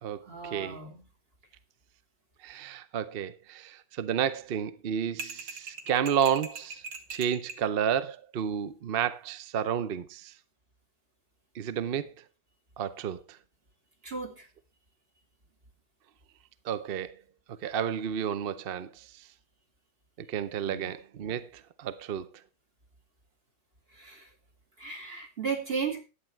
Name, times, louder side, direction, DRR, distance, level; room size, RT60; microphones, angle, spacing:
voice 1, 0.2-1.0 14.0-14.5 20.7-20.9 23.9-24.3 24.8-26.0, right 5 dB, 35° right, 2.5 m, -35 dB
voice 2, 2.4-6.8 7.1-10.3 11.5-12.1 12.8-13.4 16.6-17.2 17.5-19.3 20.3-22.3, right 8 dB, 55° right, 0.6 m, -31 dB
sound 1, 5.2-7.7, right 4 dB, 90° right, 1.9 m, -40 dB
11.5 x 9.1 x 4.4 m
omnidirectional pair, 1.9 m